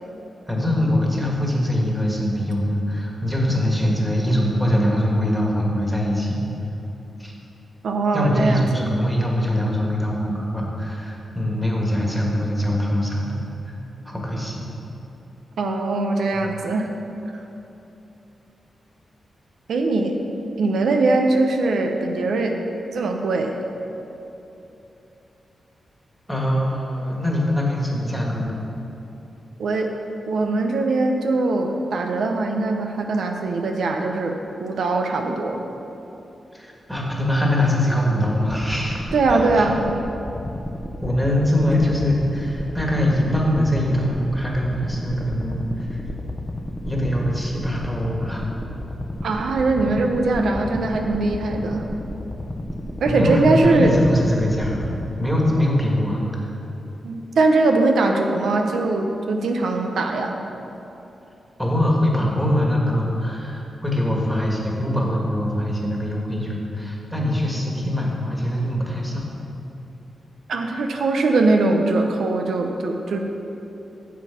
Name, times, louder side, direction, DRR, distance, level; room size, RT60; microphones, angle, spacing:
voice 1, 0.5-6.4 7.2-7.3 8.1-13.4 14.0-14.7 16.4-16.5 26.3-28.6 36.5-39.0 39.3-39.6 41.0-46.0 46.8-48.5 53.1-54.8 55.2-56.2 61.6-69.3, left 1 dB, ahead, -2 dB, 1.6 m, -22 dB
voice 2, 7.8-9.0 15.6-16.9 19.7-20.2 20.6-22.6 22.9-23.6 29.6-29.9 30.3-35.6 39.1-39.8 49.2-51.9 53.0-54.0 57.0-60.4 70.5-73.2, right 3 dB, 85° right, 3 dB, 0.8 m, -21 dB
sound 1, 38.5-55.1, left 1 dB, 20° left, 0.8 m, -32 dB
8.6 x 7.4 x 5.8 m, 3.0 s
wide cardioid pair, 125°, 0 cm